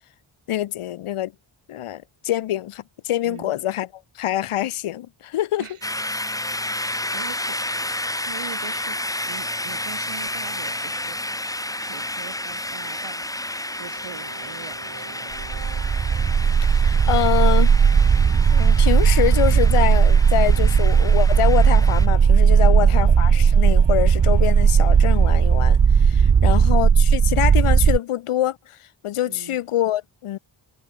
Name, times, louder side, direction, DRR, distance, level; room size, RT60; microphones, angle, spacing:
voice 1, 0.5-1.3 1.7-3.9 4.2-5.6 16.7-17.8 18.5-30.4, left 13 dB, 90° left, 0.7 m, -25 dB
sound 1, 5.8-22.1, left 1 dB, 5° left, 1.0 m, -31 dB
voice 2, 6.7-7.6 8.1-11.2 11.8-15.6 22.5-23.0 26.3-26.8 29.3-29.6, right 8 dB, 90° right, 3.1 m, -42 dB
sound 2, 13.3-26.4, right 6 dB, 60° right, 4.2 m, -46 dB
sound 3, 15.4-28.0, right 6 dB, 35° right, 0.7 m, -16 dB
wide cardioid pair, 135°, 49 cm